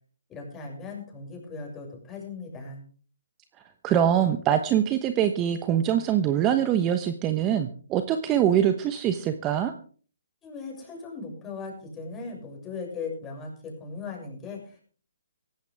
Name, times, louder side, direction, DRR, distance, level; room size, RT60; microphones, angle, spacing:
voice 1, 0.3-2.8 10.4-14.9, left 4 dB, 15° left, 0 dB, 6.8 m, -38 dB
voice 2, 3.8-9.7, right 10 dB, 20° right, 8 dB, 1.1 m, -23 dB
17.5 x 15.5 x 3.6 m, 0.43 s
hypercardioid pair, 145°, 0 cm